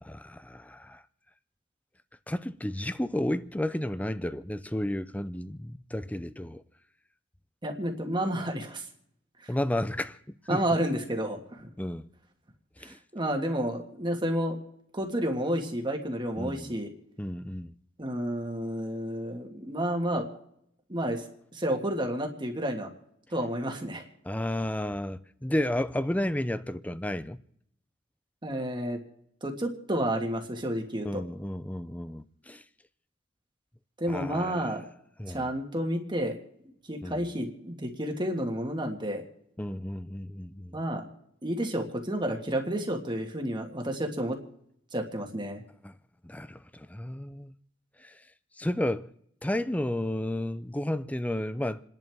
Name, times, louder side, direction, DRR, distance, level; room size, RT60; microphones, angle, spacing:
voice 1, 0.0-1.0 2.3-6.6 9.5-10.6 11.8-12.1 12.8-13.0 16.4-16.7 17.2-17.8 24.2-27.4 31.0-32.6 34.1-34.7 35.2-35.5 37.0-37.3 39.6-40.8 45.8-46.0 46.2-47.5 48.0-48.2 48.6-49.1 49.4-51.8, left 1 dB, 5° left, 0.5 m, -32 dB
voice 2, 7.6-8.9 9.4-9.5 10.5-11.7 12.8-14.6 14.9-16.9 18.0-20.3 20.9-21.2 21.5-22.9 23.3-24.1 28.4-29.0 29.4-31.2 34.0-34.8 35.3-36.4 36.9-39.2 40.7-41.1 41.4-44.4 44.9-45.6, right 1 dB, 25° right, 1.7 m, -30 dB
29.0 x 10.5 x 3.5 m
head